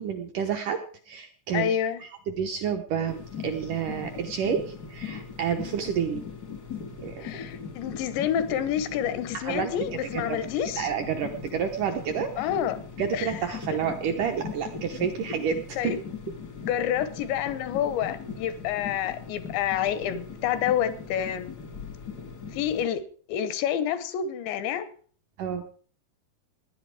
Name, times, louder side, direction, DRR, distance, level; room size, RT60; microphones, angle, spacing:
voice 1, 0.0-1.7 2.0-6.2 7.0-7.3 9.3-9.7 10.3-10.4 10.8-12.5 13.0-15.9 25.4-25.6, right 7 dB, 75° right, 4 dB, 1.9 m, -29 dB
voice 2, 1.5-2.0 7.2-10.9 12.4-12.8 13.1-13.3 15.8-16.0 16.7-21.5 22.5-23.0 23.3-24.9, left 9 dB, 85° left, 13 dB, 3.4 m, -28 dB
sound 1, 3.1-22.8, left 6 dB, 60° left, 1.0 m, -40 dB
18.0 x 10.5 x 4.8 m, 0.44 s
omnidirectional pair, 5.0 m